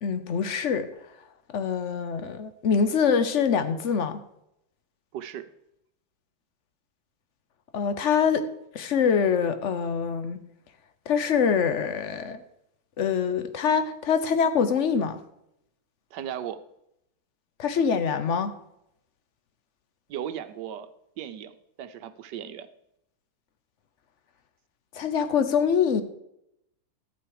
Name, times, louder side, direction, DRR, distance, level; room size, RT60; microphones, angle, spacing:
voice 1, 0.0-0.9 1.5-4.2 7.7-8.5 8.7-10.4 11.1-12.4 13.0-15.2 17.6-18.5 24.9-26.0, left 6 dB, 55° left, 0.8 m, -24 dB
voice 2, 5.1-5.5 16.1-16.6 20.1-20.9 21.2-22.7, right 10 dB, 70° right, 1.3 m, -36 dB
12.5 x 8.6 x 4.8 m
omnidirectional pair, 2.1 m